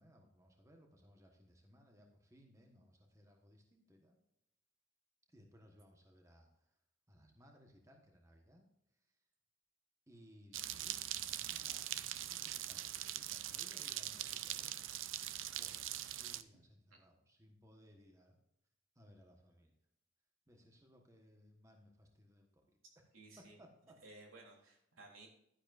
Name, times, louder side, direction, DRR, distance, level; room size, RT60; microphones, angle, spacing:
voice 1, 0.0-4.2 5.3-6.7 7.1-8.6 8.9-9.2 10.1-14.8 15.5-18.4 18.9-19.7 20.5-22.8 23.4-24.0, equal, 15° right, 2 dB, 1.2 m, -64 dB
sound 1, 10.5-16.4, right 12 dB, 70° right, 0.5 m, -42 dB
voice 2, 23.1-23.6 24.0-25.3, right 2 dB, 85° right, 0 dB, 3.3 m, -57 dB
11.5 x 10.0 x 2.6 m, 0.79 s
head